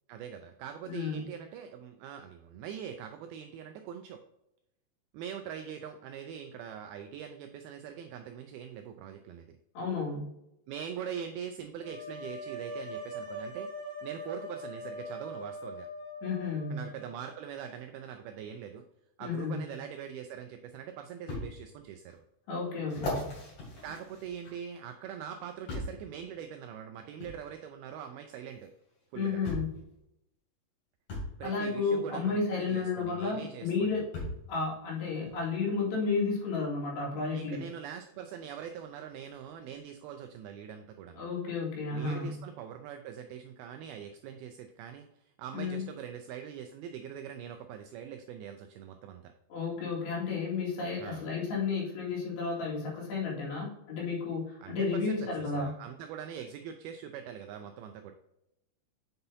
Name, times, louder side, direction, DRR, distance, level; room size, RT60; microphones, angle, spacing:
voice 1, 0.1-4.2 5.1-9.6 10.7-15.9 16.7-18.8 19.2-22.2 23.8-28.7 29.1-29.4 31.4-34.0 37.3-41.2 41.9-49.3 51.0-51.3 54.6-58.1, right 8 dB, 85° right, 6 dB, 2.2 m, -43 dB
voice 2, 0.9-1.3 9.8-10.3 16.2-16.8 19.2-19.6 22.5-23.3 29.1-29.7 31.4-34.0 34.5-37.6 41.1-42.4 45.5-45.9 49.5-55.7, left 4 dB, 80° left, -4 dB, 4.2 m, -32 dB
sound 1, 11.8-17.7, equal, 65° right, 1.2 m, -42 dB
sound 2, 21.3-21.5 22.1-22.2 22.9-24.8 25.7-26.0 27.2-27.4 28.6-28.7 29.4-29.8 31.1-31.3 33.0-33.1 34.1-34.5 35.3-35.4, left 1 dB, 45° left, 3.6 m, -37 dB
7.9 x 5.5 x 2.7 m, 0.85 s
omnidirectional pair, 4.9 m